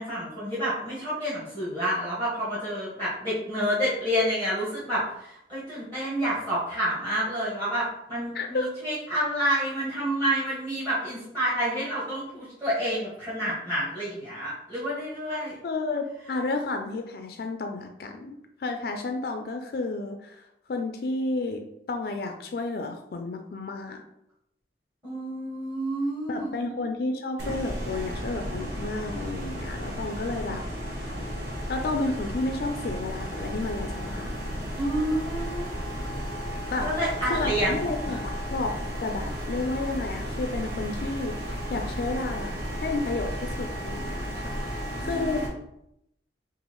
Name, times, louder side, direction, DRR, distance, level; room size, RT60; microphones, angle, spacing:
voice 1, 0.0-15.6 25.0-26.5 34.7-35.7 36.8-38.2 45.0-45.5, equal, 25° right, -10 dB, 1.4 m, -29 dB
voice 2, 8.3-8.7 15.6-20.4 20.7-24.0 26.3-30.6 31.0-31.1 31.7-34.3 36.7-36.9 37.2-38.7 39.0-42.5 42.8-45.4, left 3 dB, 55° left, 5 dB, 0.4 m, -31 dB
sound 1, 27.4-45.5, equal, 55° right, 1.3 m, -33 dB
5.4 x 2.5 x 3.0 m, 0.80 s
head